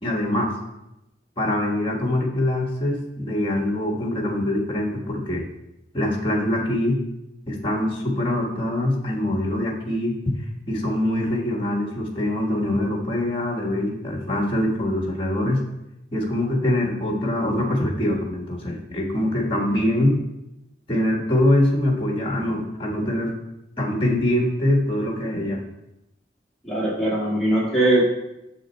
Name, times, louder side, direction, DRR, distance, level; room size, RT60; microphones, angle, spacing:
voice 1, 0.0-0.5 1.4-5.4 5.9-7.0 7.5-10.4 10.7-15.6 16.1-20.2 20.9-23.4 23.8-25.6, left 1 dB, 30° left, 1 dB, 1.4 m, -23 dB
voice 2, 26.6-28.0, right 1 dB, ahead, -7 dB, 1.9 m, -21 dB
6.9 x 6.4 x 4.4 m, 0.89 s
head